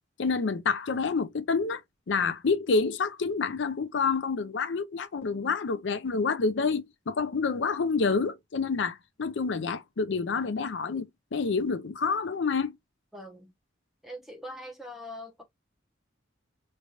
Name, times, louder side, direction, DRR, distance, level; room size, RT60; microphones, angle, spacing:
voice 1, 0.2-1.8 2.1-12.7, left 4 dB, 65° left, 0.5 m, -28 dB
voice 2, 13.1-13.5 14.0-15.4, left 1 dB, ahead, 1.1 m, -42 dB
4.5 x 3.3 x 2.5 m
head